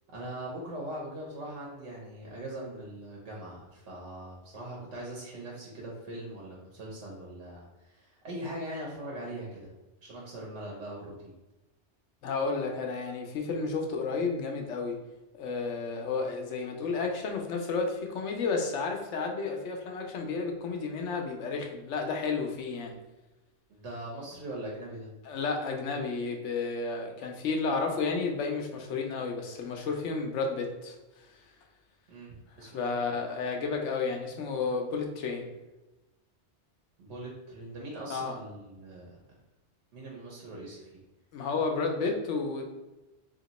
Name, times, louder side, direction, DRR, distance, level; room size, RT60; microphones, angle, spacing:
voice 1, 0.1-9.7 10.0-11.1 23.7-25.1 32.1-32.3 32.6-32.9 37.0-39.1 39.9-41.0, right 1 dB, 70° right, -3 dB, 1.2 m, -41 dB
voice 2, 12.2-15.0 15.4-23.0 25.2-31.0 32.6-35.5 38.1-38.4 41.3-42.6, left 4 dB, 90° left, 2 dB, 1.0 m, -32 dB
2.9 x 2.9 x 4.1 m, 1.1 s
omnidirectional pair, 1.2 m